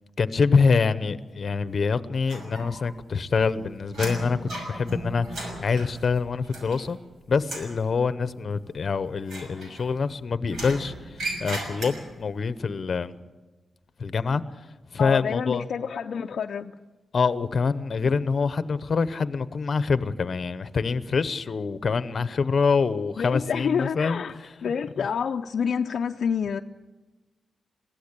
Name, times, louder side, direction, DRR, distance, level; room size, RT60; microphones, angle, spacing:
voice 1, 0.2-7.0 7.3-13.1 14.0-14.4 14.9-15.7 17.1-25.1, left 5 dB, 50° left, 13 dB, 0.9 m, -25 dB
sound 1, 2.3-3.0 3.3-7.1 7.4-7.8 9.2-10.1 10.5-12.3, right 1 dB, 90° right, 6.2 m, -36 dB
voice 2, 15.0-16.7 23.2-24.4 24.6-26.6, left 7 dB, 65° left, 4 dB, 0.6 m, -28 dB
22.5 x 16.0 x 8.3 m, 1.2 s
wide cardioid pair, 110°, 0 cm